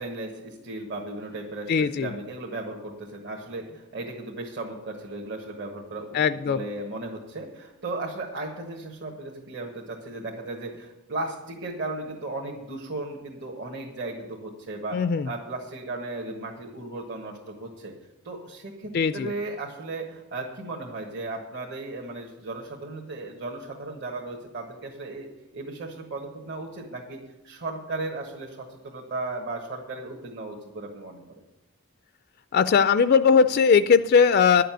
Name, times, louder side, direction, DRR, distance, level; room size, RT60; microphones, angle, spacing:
voice 1, 0.0-1.7 2.0-6.2 6.5-15.0 15.2-17.9 18.2-25.3 25.5-27.2 27.4-31.4, right 2 dB, 55° right, -1 dB, 1.5 m, -36 dB
voice 2, 1.7-2.1 6.1-6.6 14.9-15.3 18.9-19.3 32.5-34.6, left 6 dB, 45° left, 12 dB, 0.3 m, -19 dB
11.0 x 6.7 x 9.3 m, 0.96 s
head